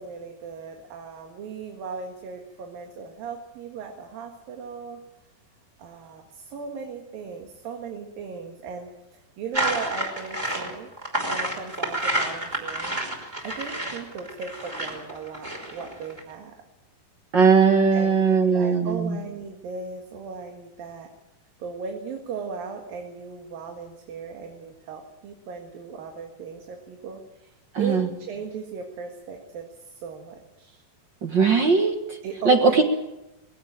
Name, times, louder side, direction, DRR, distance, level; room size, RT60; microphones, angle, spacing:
voice 1, 0.0-5.0 5.8-10.9 11.3-13.0 13.4-16.5 17.9-21.1 21.6-30.8 32.2-32.8, right 5 dB, 75° right, 3 dB, 3.6 m, -37 dB
sound 1, 9.5-16.2, right 1 dB, 10° right, 3.6 m, -29 dB
voice 2, 17.3-19.2 27.7-28.1 31.2-32.2 32.4-32.8, right 5 dB, 50° right, 5 dB, 1.3 m, -19 dB
20.5 x 16.0 x 8.9 m, 0.92 s
omnidirectional pair, 4.1 m